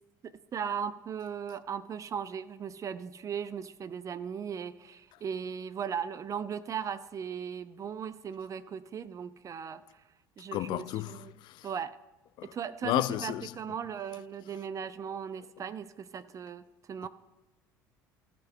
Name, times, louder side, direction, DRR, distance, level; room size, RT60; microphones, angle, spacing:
voice 1, 0.2-9.8 10.4-11.3 11.6-12.0 12.5-17.1, right 7 dB, 30° right, 0.5 m, -37 dB
voice 2, 10.5-11.7 12.4-12.5 12.8-13.5, left 16 dB, 45° left, 0.3 m, -32 dB
15.5 x 5.3 x 5.6 m
figure-of-eight pair, 60°, 11 cm